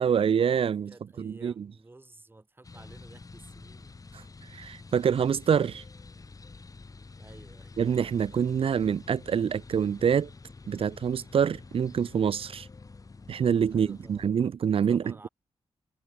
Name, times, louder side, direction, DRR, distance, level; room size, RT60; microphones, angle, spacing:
voice 1, 0.0-0.9 1.2-1.6 4.5-5.8 7.8-10.3 10.7-12.7 13.3-15.3, right 7 dB, 60° right, 0.7 m, -26 dB
voice 2, 0.9-4.0 7.2-7.8 13.7-14.3 14.7-15.3, right 2 dB, 20° right, 6.1 m, -52 dB
sound 1, 2.6-14.3, left 3 dB, 35° left, 3.8 m, -48 dB
cardioid pair, 100°, 11 cm